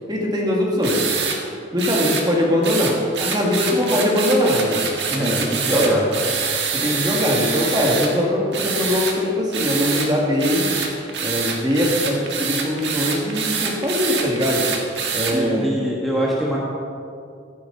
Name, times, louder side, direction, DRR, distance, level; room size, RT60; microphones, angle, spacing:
voice 1, 0.1-1.0 1.7-4.9 5.1-5.3 5.7-6.0 6.7-10.7 11.2-14.7 15.1-15.7, left 1 dB, 25° right, -2 dB, 2.1 m, -21 dB
sound 1, 0.8-1.4 1.8-2.2 2.6-8.1 8.5-9.1 9.5-10.1 10.4-15.3, right 6 dB, 65° right, 1.6 m, -25 dB
voice 2, 5.1-6.0 15.3-16.6, equal, ahead, -6 dB, 1.4 m, -23 dB
14.5 x 11.0 x 4.0 m, 2.4 s
head